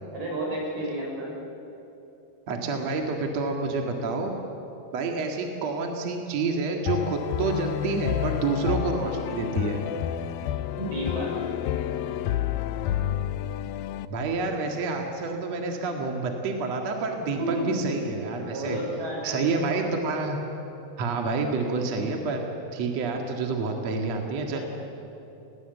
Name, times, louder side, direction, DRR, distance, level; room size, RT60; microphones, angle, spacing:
voice 1, 0.1-1.3 10.8-11.4 17.4-18.0 18.4-19.9 24.5-24.6, right 1 dB, 65° right, -1 dB, 7.7 m, -32 dB
voice 2, 2.5-4.3 4.9-9.8 14.1-18.8 19.2-20.4 21.0-22.5 22.7-24.6, right 3 dB, 50° right, 2 dB, 2.6 m, -28 dB
sound 1, 6.9-14.1, left 11 dB, 80° left, 2.2 m, -29 dB
29.5 x 18.5 x 8.2 m, 3.0 s
omnidirectional pair, 4.7 m